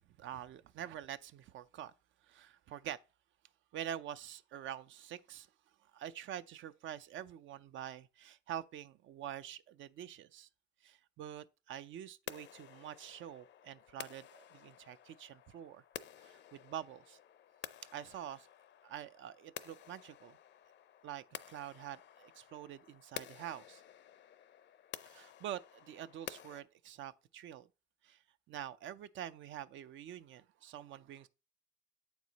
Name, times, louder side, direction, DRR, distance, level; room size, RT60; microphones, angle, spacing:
voice 1, 0.2-1.9 2.3-3.0 3.7-5.5 5.9-10.5 10.8-15.8 16.2-17.2 17.9-18.5 18.8-20.4 21.0-23.8 25.0-27.7 28.0-28.2 28.5-31.3, right 10 dB, 75° right, 0.5 m, -46 dB
sound 1, 12.3-26.6, left 10 dB, 65° left, 0.5 m, -52 dB
8.1 x 4.7 x 4.0 m
cardioid pair, 90°, 20 cm